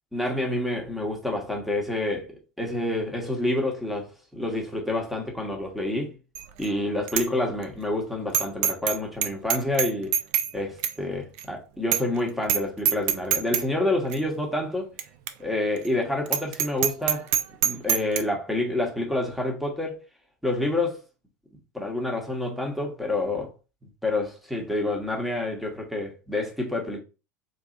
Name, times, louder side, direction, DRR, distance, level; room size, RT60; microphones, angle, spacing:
voice 1, 0.1-6.2 6.6-10.2 10.5-14.9 15.4-17.3 17.6-20.0 20.4-21.0 21.7-23.5 24.0-27.0, left 2 dB, ahead, 1.2 m, -28 dB
Bicycle bell, 6.3-6.7 7.1-7.3 7.6-7.7 8.3-9.0 9.2-10.5 10.8-10.9 11.4-11.5 11.9-12.2 12.4-12.6 12.8-13.6 14.1-14.2 15.0-15.1 15.3-15.4 15.8-15.9 16.3-18.2, right 9 dB, 50° right, 0.5 m, -24 dB
4.0 x 3.2 x 2.5 m
figure-of-eight pair, 80°, 10 cm